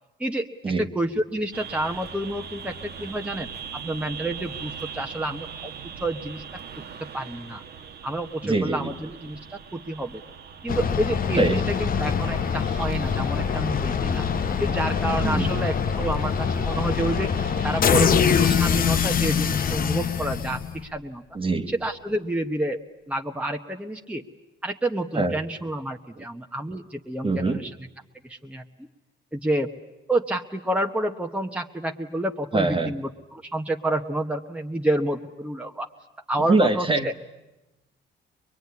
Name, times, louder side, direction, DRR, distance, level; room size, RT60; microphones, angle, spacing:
voice 1, 0.8-5.7 6.0-6.4 7.1-7.6 8.0-10.2 10.6-14.3 14.6-17.3 17.6-21.2 21.7-22.8 23.1-24.2 24.6-27.7 28.2-28.6 29.3-29.7 30.1-35.9 36.3-37.1, right 1 dB, 5° right, 3 dB, 1.1 m, -29 dB
sound 1, 1.5-18.0, right 6 dB, 55° right, 1.2 m, -41 dB
voice 2, 8.4-8.9 11.4-11.6 15.2-15.6 21.3-21.7 25.1-25.4 27.2-27.6 32.5-32.9 36.5-37.1, right 3 dB, 25° right, 8 dB, 1.4 m, -23 dB
sound 2, 10.7-20.9, left 7 dB, 45° left, 0.9 m, -24 dB
23.0 x 23.0 x 9.6 m, 1.0 s
cardioid pair, 90°, 20 cm